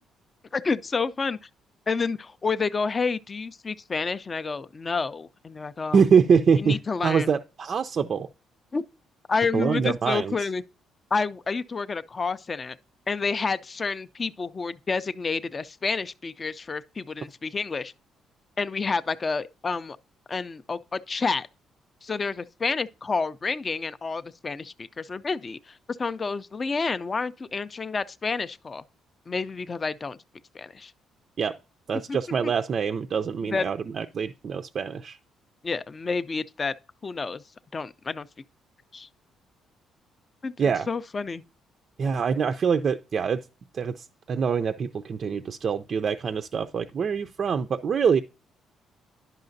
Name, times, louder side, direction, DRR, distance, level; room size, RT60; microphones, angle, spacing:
voice 1, 0.5-1.4 1.9-6.0 6.6-7.3 8.7-8.8 9.3-10.6 11.1-12.8 13.1-17.9 18.6-20.0 20.3-21.5 22.0-28.8 29.3-30.2 30.5-30.9 32.1-32.2 33.4-33.7 35.6-36.7 37.0-37.4 37.7-38.3 38.9-39.1 40.4-40.5 40.9-41.4, left 4 dB, 30° left, 0.3 m, -29 dB
voice 2, 5.9-6.8 7.0-8.3 9.5-10.3 31.4-31.5 31.9-35.2 40.6-40.9 42.0-43.4 43.7-48.2, right 6 dB, 45° right, 0.4 m, -24 dB
10.5 x 5.6 x 2.6 m
cardioid pair, 125°, 0 cm